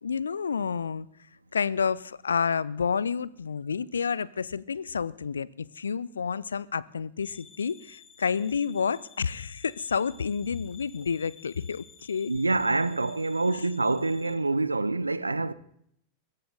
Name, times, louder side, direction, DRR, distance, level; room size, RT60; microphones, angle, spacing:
voice 1, 0.0-1.1 1.5-12.3, left 6 dB, 70° left, 0.5 m, -29 dB
sound 1, 7.2-14.3, left 6 dB, 25° left, 2.2 m, -54 dB
voice 2, 12.3-15.5, right 3 dB, 80° right, 0.8 m, -26 dB
21.5 x 16.5 x 3.9 m
figure-of-eight pair, 90°, 0 cm